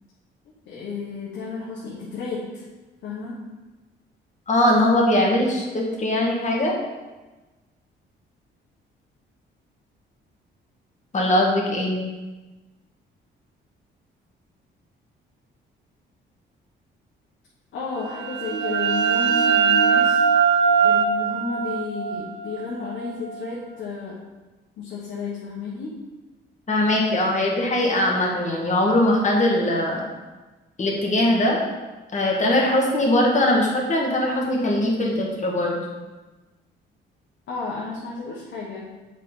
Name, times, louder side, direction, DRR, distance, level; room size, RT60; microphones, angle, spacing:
voice 1, 0.6-2.6 3.0-3.4 17.7-20.2 20.8-24.2 24.8-26.0 37.5-39.0, left 4 dB, 70° left, -6 dB, 1.4 m, -32 dB
voice 2, 4.5-6.7 11.1-12.0 26.7-30.1 30.8-31.6 32.1-35.9, left 1 dB, 35° left, -2 dB, 1.7 m, -21 dB
sound 1, 18.1-23.5, right 6 dB, 75° right, 0.6 m, -21 dB
7.2 x 4.3 x 3.9 m, 1.2 s
cardioid pair, 90°, 20 cm